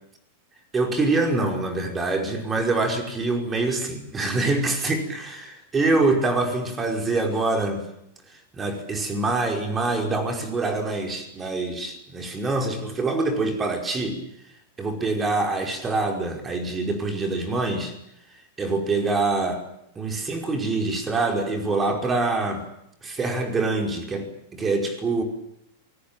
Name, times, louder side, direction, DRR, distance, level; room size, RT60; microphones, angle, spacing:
voice 1, 0.7-7.8 8.5-14.2 14.8-17.9 18.6-19.6 20.0-22.6 23.0-25.2, right 3 dB, 20° right, 4 dB, 5.2 m, -25 dB
27.5 x 20.0 x 9.0 m, 0.76 s
figure-of-eight pair, 90°, 0 cm